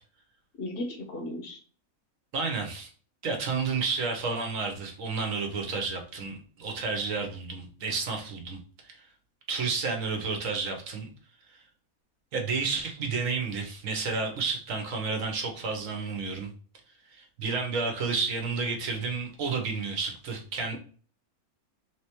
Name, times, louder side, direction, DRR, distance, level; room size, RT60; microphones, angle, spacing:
voice 1, 0.6-1.6, left 1 dB, 50° left, 4 dB, 0.9 m, -35 dB
voice 2, 2.3-2.9 3.2-8.6 8.8-9.0 9.5-11.1 11.5-11.6 12.3-16.5 17.1-20.8, right 4 dB, 65° right, 3 dB, 1.3 m, -31 dB
3.7 x 3.3 x 2.9 m, 0.43 s
omnidirectional pair, 1.5 m